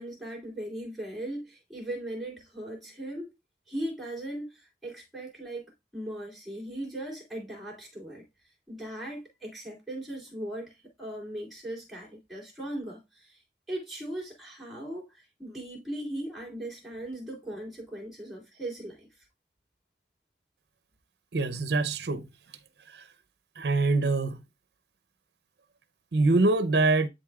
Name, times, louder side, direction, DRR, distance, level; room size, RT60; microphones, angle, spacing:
voice 1, 0.0-3.3 3.7-5.6 5.9-8.2 8.7-13.4 13.7-19.1, right 1 dB, ahead, 3.1 m, -38 dB
voice 2, 21.3-22.2 23.6-24.4 26.1-27.1, right 3 dB, 70° right, 0.6 m, -24 dB
10.5 x 4.1 x 2.3 m
head